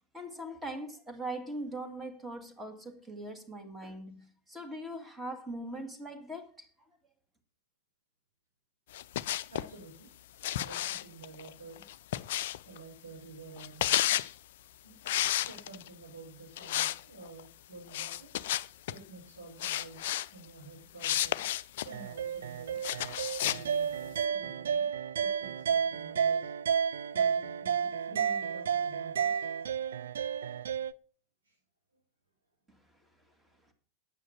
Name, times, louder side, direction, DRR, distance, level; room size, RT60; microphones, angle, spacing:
voice 1, 0.1-6.7 32.7-32.8, right 1 dB, 10° right, 2.4 m, -41 dB
sound 1, 8.9-9.7 10.4-12.8 13.6-14.3 15.0-15.9 16.6-17.0 17.3-17.4 17.9-19.0 19.6-20.3 21.0-21.9 22.8-23.6, left 13 dB, 55° left, 0.5 m, -31 dB
voice 2, 9.5-10.1 10.5-11.8 12.6-14.2 14.8-15.0 15.4-18.3 18.9-21.4 21.8-22.8 23.4-24.9 25.2-26.5 27.1-29.5 31.4-31.5, right 3 dB, 80° right, 6.2 m, -50 dB
sound 2, 21.9-30.9, right 7 dB, 65° right, 0.5 m, -31 dB
10.0 x 9.0 x 5.9 m
figure-of-eight pair, 90°, 0 cm